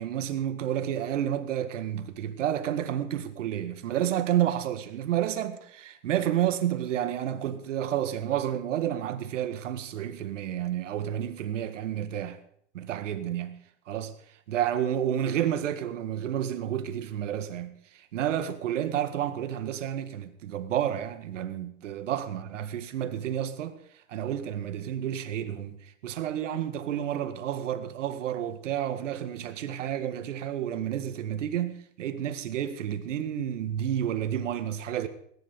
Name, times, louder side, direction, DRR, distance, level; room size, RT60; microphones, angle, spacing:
voice 1, 0.0-12.4 12.7-13.6 13.9-14.1 14.5-23.8 24.1-35.1, right 10 dB, 80° right, 1.8 m, -30 dB
19.0 x 11.0 x 5.4 m
hypercardioid pair, 130°, 37 cm